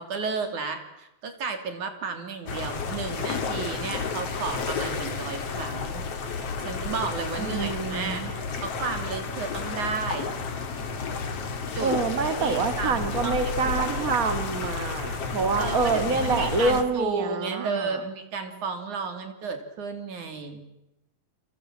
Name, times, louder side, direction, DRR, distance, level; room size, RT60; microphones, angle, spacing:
voice 1, 0.0-6.1 6.7-8.2 8.6-10.3 11.7-11.9 12.4-14.2 15.6-20.6, right 5 dB, 60° right, 7 dB, 4.1 m, -33 dB
sound 1, 2.5-16.8, left 5 dB, 45° left, 3.2 m, -31 dB
voice 2, 7.4-8.3 11.8-17.9, right 4 dB, 30° right, 8 dB, 1.9 m, -26 dB
29.0 x 25.5 x 7.6 m, 0.91 s
omnidirectional pair, 4.0 m